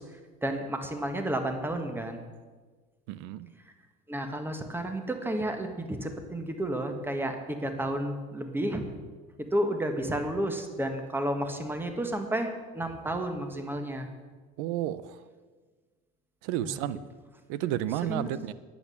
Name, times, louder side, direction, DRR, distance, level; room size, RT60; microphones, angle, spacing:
voice 1, 0.0-2.2 4.1-8.8 9.4-14.1 16.6-16.8 18.1-18.3, right 1 dB, 10° right, 6 dB, 1.6 m, -32 dB
voice 2, 3.1-3.5 14.6-15.2 16.4-17.0 17.5-18.5, right 12 dB, 85° right, 16 dB, 0.6 m, -31 dB
10.0 x 8.5 x 7.0 m, 1.4 s
supercardioid pair, 105°, 21 cm